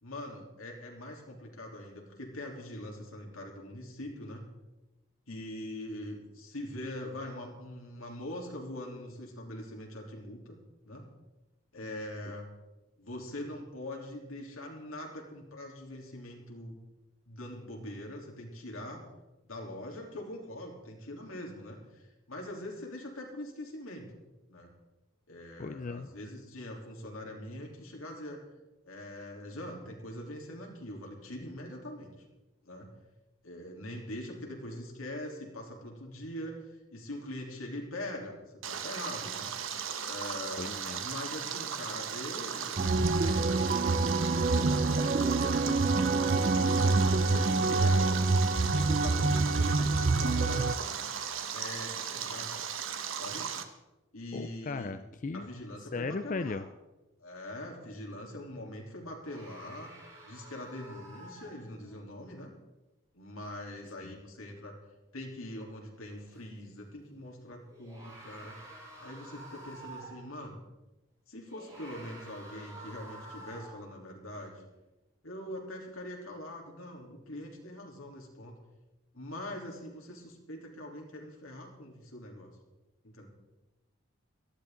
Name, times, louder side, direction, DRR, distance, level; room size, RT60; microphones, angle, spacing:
voice 1, 0.0-4.4 5.3-10.5 10.8-11.1 11.7-12.5 13.0-16.8 17.3-19.0 19.4-24.1 24.5-24.7 25.3-28.4 28.8-32.1 32.6-32.9 33.4-38.4 38.7-39.5 40.0-40.7 41.0-44.1 44.5-48.1 48.6-51.1 51.5-52.6 53.1-53.5 54.1-54.9 55.3-56.7 57.2-59.9 60.2-62.5 63.1-64.8 65.1-68.6 69.0-70.6 71.3-74.7 75.2-78.6 79.1-82.6 83.0-83.3, left 1 dB, 85° left, 0 dB, 3.3 m, -43 dB
voice 2, 25.6-26.1 40.6-41.0 54.3-55.5 55.9-56.7 64.0-64.1, left 4 dB, 35° left, 10 dB, 0.4 m, -37 dB
Stream, 38.6-53.6, right 7 dB, 75° right, 1.0 m, -37 dB
sound 1, 42.8-50.7, right 3 dB, 40° right, 0.4 m, -26 dB
sound 2, 59.2-62.0 66.3-66.4 67.7-70.3 71.5-73.9, right 2 dB, 20° right, 5.8 m, -49 dB
18.0 x 13.0 x 3.8 m, 1.0 s
head